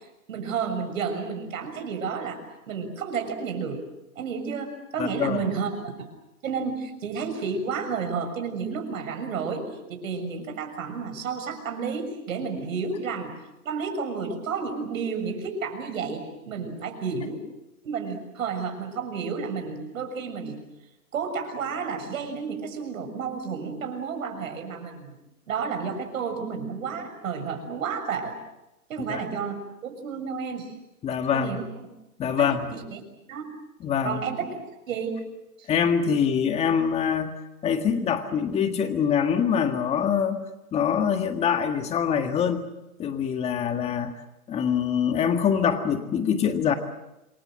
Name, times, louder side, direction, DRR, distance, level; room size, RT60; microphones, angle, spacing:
voice 1, 0.3-2.4 2.7-3.8 4.1-5.9 6.4-9.6 9.9-13.3 13.6-17.4 17.8-20.6 21.1-25.1 25.5-28.4 28.9-30.7 31.3-31.6 32.4-33.0 33.3-33.4 34.0-35.1 35.6-35.7, right 5 dB, 65° right, 6 dB, 6.9 m, -31 dB
voice 2, 5.0-5.4 29.1-29.2 31.0-31.6 32.2-32.7 33.8-34.2 35.7-37.4 37.6-40.4 40.7-42.7 43.0-44.1 44.5-46.7, left 7 dB, 15° left, 7 dB, 1.7 m, -24 dB
27.5 x 23.5 x 7.7 m, 0.96 s
hypercardioid pair, 150°, 44 cm